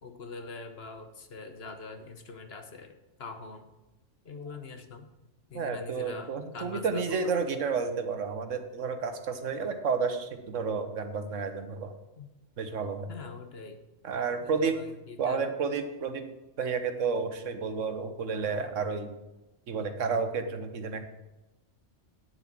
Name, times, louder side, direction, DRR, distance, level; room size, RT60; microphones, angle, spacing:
voice 1, 0.0-3.7 4.2-5.1 5.5-7.3 12.2-12.3 13.1-13.8 14.4-15.5, left 4 dB, 55° left, 7 dB, 1.3 m, -43 dB
voice 2, 5.5-11.9 12.6-13.1 14.0-14.8 15.2-16.2 16.6-19.1 19.7-21.1, right 5 dB, 85° right, 8 dB, 1.4 m, -31 dB
9.6 x 7.0 x 6.0 m, 1.0 s
omnidirectional pair, 1.3 m